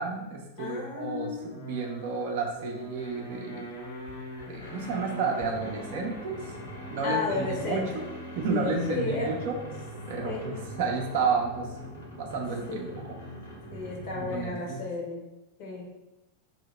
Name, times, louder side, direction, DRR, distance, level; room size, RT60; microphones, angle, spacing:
voice 1, 0.0-3.7 4.5-6.4 6.9-8.0 8.3-9.6 10.1-11.7 12.2-13.2 14.1-14.8, right 4 dB, 50° right, 0 dB, 0.6 m, -31 dB
voice 2, 0.6-1.5 7.0-8.0 8.5-9.3 10.2-10.6 12.7-13.0 13.7-15.3 15.6-15.9, left 4 dB, 45° left, -1 dB, 1.0 m, -33 dB
sound 1, 1.3-14.7, equal, 70° left, 1.2 m, -42 dB
2.8 x 2.8 x 4.1 m, 0.97 s
figure-of-eight pair, 90°, 0 cm